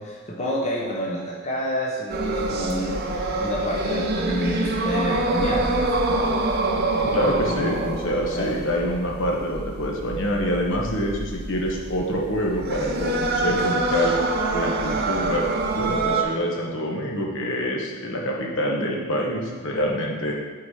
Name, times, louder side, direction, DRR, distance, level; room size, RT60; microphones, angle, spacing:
voice 1, 0.0-6.4 6.7-7.2 7.5-7.9 8.3-8.6, equal, 35° left, -3 dB, 1.0 m, -29 dB
sound 1, 2.1-16.2, right 2 dB, 50° right, 0.8 m, -26 dB
voice 2, 7.1-14.1 14.5-15.5 15.7-20.3, equal, 65° left, -1 dB, 1.2 m, -26 dB
8.3 x 4.1 x 4.9 m, 1.5 s
head